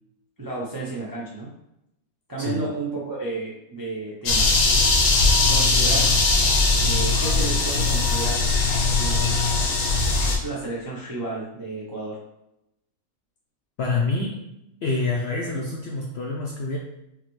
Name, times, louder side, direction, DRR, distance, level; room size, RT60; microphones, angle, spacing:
voice 1, 0.4-1.5 2.3-4.5 5.5-6.4 6.8-8.6 8.9-9.4 10.4-12.2, right 3 dB, 30° right, -5 dB, 0.4 m, -32 dB
sound 1, 4.3-10.4, left 3 dB, 85° left, 1.3 m, -20 dB
voice 2, 13.8-14.3 14.8-16.8, left 3 dB, 65° left, -1 dB, 0.6 m, -26 dB
5.6 x 2.2 x 3.0 m, 0.85 s
omnidirectional pair, 1.5 m